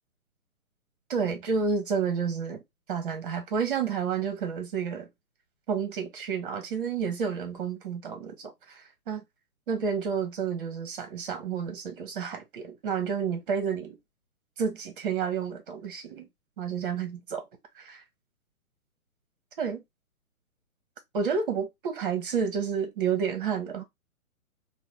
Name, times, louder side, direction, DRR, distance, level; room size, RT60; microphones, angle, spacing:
voice 1, 1.1-2.6 2.9-5.1 5.7-9.2 9.7-14.0 14.6-16.3 16.6-17.5 17.7-18.0 19.6-19.8 21.1-23.8, right 6 dB, 35° right, 0.9 m, -30 dB
3.7 x 2.1 x 2.9 m
figure-of-eight pair, 135°, 44 cm